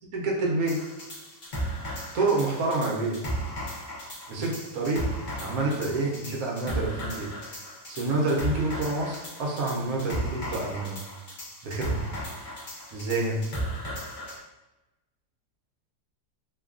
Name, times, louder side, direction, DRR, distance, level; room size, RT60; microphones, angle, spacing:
voice 1, 0.1-0.8 2.1-3.2 4.3-7.3 7.9-11.0 11.6-12.1 12.9-13.5, right 2 dB, 65° right, -2 dB, 1.0 m, -28 dB
sound 1, 0.7-14.4, right 1 dB, 60° left, 0.5 m, -35 dB
3.1 x 2.2 x 2.4 m, 1.1 s
omnidirectional pair, 1.8 m